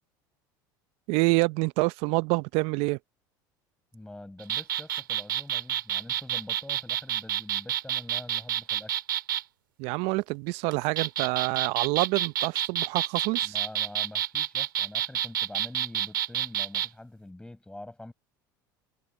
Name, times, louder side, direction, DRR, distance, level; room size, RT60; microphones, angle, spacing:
voice 1, 1.1-3.0 9.8-13.5, right 26 dB, 65° right, 0.7 m, -27 dB
voice 2, 3.9-9.0 13.4-18.1, left 1 dB, 10° left, 6.3 m, -45 dB
sound 1, 4.4-9.4 10.7-16.9, right 11 dB, 90° right, 2.3 m, -29 dB
hypercardioid pair, 80°, 11 cm